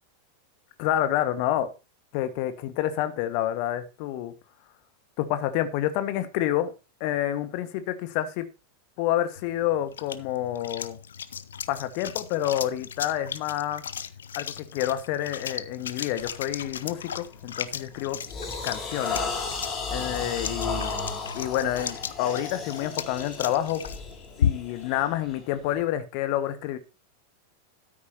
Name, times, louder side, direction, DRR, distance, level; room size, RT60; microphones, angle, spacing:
voice 1, 0.8-1.7 2.1-4.3 5.2-6.7 7.0-8.5 9.0-11.0 11.7-13.8 14.3-18.2 18.6-19.2 19.9-20.9 21.3-23.8 24.4-26.8, left 12 dB, 45° left, 11 dB, 1.6 m, -28 dB
sound 1, 9.4-24.9, left 8 dB, 65° left, 0.7 m, -35 dB
sound 2, 16.2-16.4 16.9-17.2 17.7-25.8, left 4 dB, 25° left, 3.6 m, -34 dB
13.0 x 9.3 x 2.9 m, 0.29 s
figure-of-eight pair, 90°, 0 cm